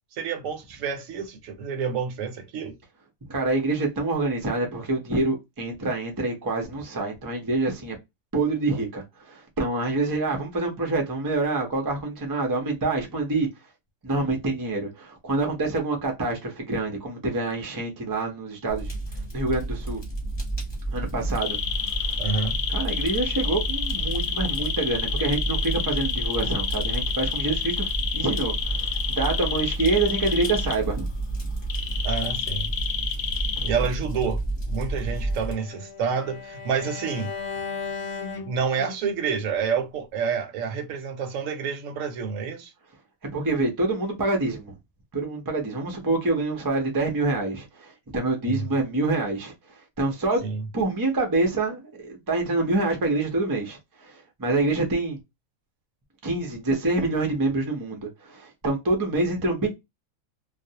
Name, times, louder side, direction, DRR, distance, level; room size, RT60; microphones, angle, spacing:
voice 1, 0.1-2.8 22.2-22.6 32.0-32.7 33.6-34.4 34.7-37.4 38.5-42.7 48.5-48.7 50.4-50.6, right 6 dB, 75° right, 0.9 m, -28 dB
voice 2, 3.3-8.0 8.3-13.5 14.0-18.9 19.3-20.0 20.9-21.6 22.0-22.2 22.7-31.1 33.6-33.7 43.3-44.7 45.1-49.5 50.0-50.5 50.7-55.2 56.2-59.7, right 2 dB, 35° right, 0.3 m, -26 dB
Fire, 18.7-35.5, right 2 dB, 20° left, 0.9 m, -30 dB
sound 1, 21.4-30.7 31.7-33.7, left 8 dB, 80° left, 1.0 m, -29 dB
Bowed string instrument, 34.9-39.1, left 5 dB, 65° left, 0.7 m, -36 dB
2.4 x 2.0 x 2.7 m
omnidirectional pair, 1.4 m